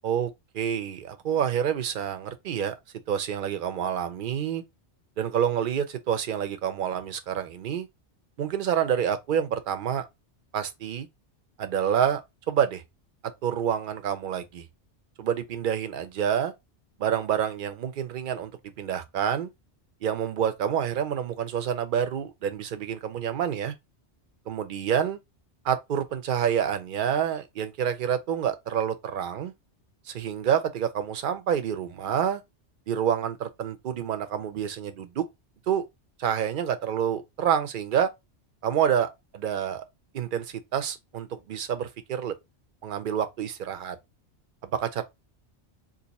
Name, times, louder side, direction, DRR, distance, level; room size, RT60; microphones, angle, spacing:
voice 1, 0.0-2.7 3.1-4.6 5.2-7.9 8.4-10.0 10.5-11.1 11.6-12.2 12.5-12.8 13.4-14.7 15.2-16.5 17.0-18.5 18.8-19.5 20.0-23.7 24.5-25.2 25.6-29.5 30.1-32.4 32.9-35.2 35.7-35.8 36.2-38.1 38.6-39.8 40.1-42.3 42.8-44.0 44.7-45.0, right 8 dB, 55° right, 0.7 m, -28 dB
2.7 x 2.5 x 4.0 m
omnidirectional pair, 1.2 m